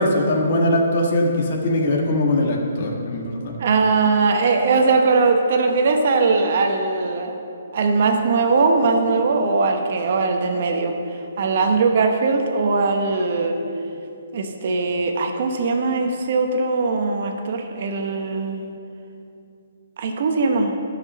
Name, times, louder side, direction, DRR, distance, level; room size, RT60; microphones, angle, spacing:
voice 1, 0.0-3.5, left 1 dB, 45° left, 1 dB, 1.6 m, -21 dB
voice 2, 3.6-7.3 7.7-10.9 11.4-13.6 14.3-18.6 20.0-20.8, right 4 dB, 50° right, 4 dB, 1.0 m, -20 dB
10.5 x 6.0 x 6.6 m, 2.6 s
hypercardioid pair, 165°, 0 cm